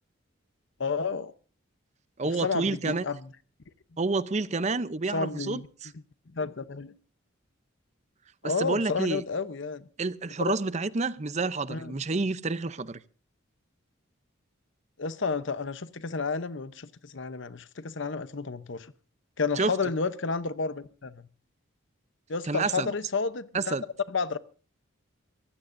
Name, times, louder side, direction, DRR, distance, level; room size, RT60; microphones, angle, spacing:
voice 1, 0.8-1.3 2.2-3.2 5.1-5.6 6.3-6.9 8.4-9.9 10.4-10.5 11.7-11.9 15.0-18.9 19.4-21.2 22.3-23.8 24.1-24.4, left 4 dB, 60° left, 0.8 m, -31 dB
voice 2, 2.2-3.1 4.0-5.9 8.4-9.2 10.0-13.0 19.6-19.7 22.4-22.9 23.5-23.8, right 3 dB, 35° right, 0.6 m, -29 dB
23.0 x 16.0 x 2.6 m
head